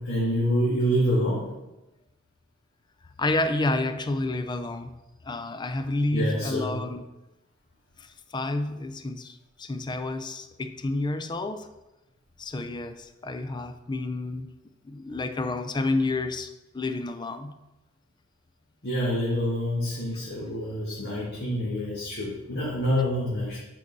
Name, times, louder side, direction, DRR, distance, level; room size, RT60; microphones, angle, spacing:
voice 1, 0.0-1.5 6.1-6.8 18.8-23.6, equal, 50° left, -6 dB, 1.6 m, -27 dB
voice 2, 3.2-4.9 5.2-7.0 8.0-11.7 12.4-14.5 14.8-17.6, left 2 dB, 20° left, 9 dB, 0.4 m, -30 dB
8.3 x 5.3 x 4.0 m, 1.0 s
head